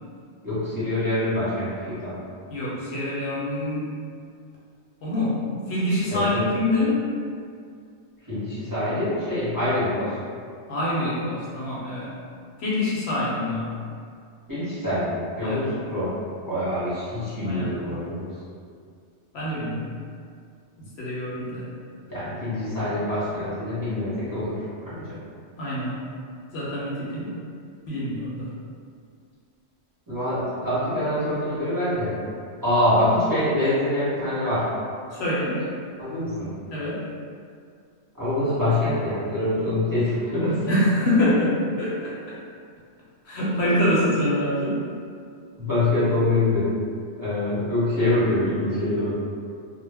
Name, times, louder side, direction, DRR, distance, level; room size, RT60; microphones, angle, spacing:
voice 1, 0.4-2.2 6.1-6.4 8.2-10.2 14.5-16.1 16.4-18.3 22.0-24.5 24.8-25.1 30.1-32.1 32.6-34.7 36.0-36.5 38.2-40.6 43.6-43.9 45.6-46.7 47.2-49.1, left 1 dB, 20° right, -13 dB, 0.8 m, -25 dB
voice 2, 2.5-3.9 5.0-5.4 5.7-7.0 10.7-12.1 12.6-13.7 15.4-15.6 17.4-17.7 19.3-19.9 20.8-21.7 25.6-25.9 26.5-27.3 27.8-28.5 35.1-35.6 36.7-37.0 40.7-42.4 43.2-44.8, left 1 dB, 70° left, -7 dB, 0.8 m, -25 dB
2.2 x 2.1 x 3.3 m, 2.2 s
omnidirectional pair, 1.2 m